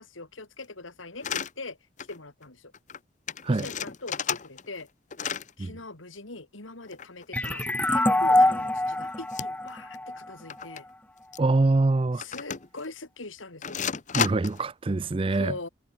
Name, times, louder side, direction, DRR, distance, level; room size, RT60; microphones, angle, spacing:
voice 1, 0.0-2.7 3.5-4.9 5.6-7.6 7.9-10.9 12.2-13.8 15.4-15.7, left 3 dB, 85° left, 3.1 m, -41 dB
sound 1, 1.2-1.5 2.0-2.2 2.4-2.5 2.7-3.0 3.3-4.8 5.1-5.5 6.8-7.9 8.3-8.4 9.3-9.7 9.9-10.0 10.5-10.8 11.3-11.4 12.2-12.9 13.6-14.6, left 7 dB, 40° left, 0.8 m, -33 dB
sound 2, 7.3-10.8, left 1 dB, 10° left, 1.0 m, -24 dB
voice 2, 11.4-12.2 14.1-15.5, right 2 dB, 30° right, 0.4 m, -24 dB
head